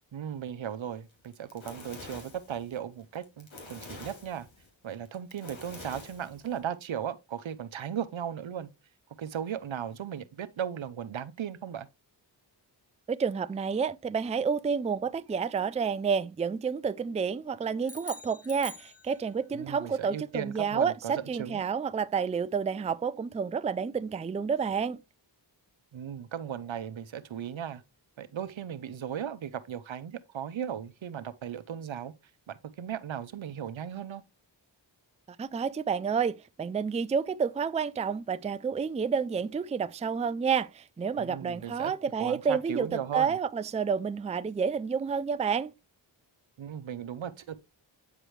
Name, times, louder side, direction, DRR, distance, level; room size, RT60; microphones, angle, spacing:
voice 1, 0.1-4.5 4.8-8.7 9.2-11.9 19.5-21.6 25.9-27.8 28.2-32.1 32.5-34.2 41.2-41.9 42.2-43.4 46.6-47.6, right 9 dB, 80° right, 0.7 m, -37 dB
Fire, 1.1-6.6, left 2 dB, 80° left, 2.5 m, -47 dB
voice 2, 13.1-25.0 35.4-45.7, right 6 dB, 15° right, 0.3 m, -30 dB
sound 1, 17.8-19.6, left 1 dB, 30° left, 1.4 m, -45 dB
8.9 x 4.9 x 3.1 m
cardioid pair, 45°, 46 cm